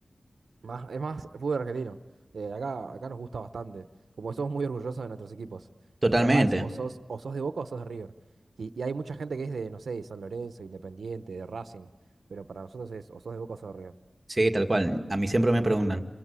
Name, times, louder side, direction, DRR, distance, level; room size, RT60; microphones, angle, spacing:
voice 1, 0.6-2.0 2.3-3.9 4.2-5.7 6.0-8.1 8.6-11.9 12.3-13.9, right 4 dB, 90° right, 11 dB, 0.9 m, -35 dB
voice 2, 6.0-6.6 14.3-16.0, right 1 dB, 30° right, 6 dB, 1.8 m, -24 dB
28.0 x 23.0 x 8.3 m, 1.2 s
wide cardioid pair, 65°, 0 cm